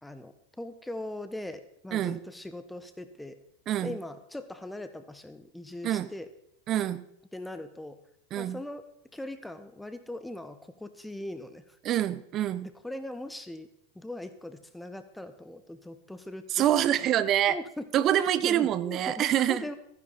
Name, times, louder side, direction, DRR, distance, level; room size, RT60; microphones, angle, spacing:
voice 1, 0.0-3.4 3.8-6.3 7.3-8.0 8.3-8.9 9.1-11.6 12.6-13.7 13.9-16.7 17.5-18.0 18.4-19.7, left 1 dB, 5° left, 10 dB, 1.3 m, -40 dB
voice 2, 3.7-4.0 5.8-6.1 6.7-7.0 8.3-8.6 11.8-12.7 16.5-17.6 17.9-19.6, right 11 dB, 40° right, 16 dB, 0.8 m, -26 dB
14.5 x 10.5 x 4.2 m, 0.72 s
hypercardioid pair, 90°, 0 cm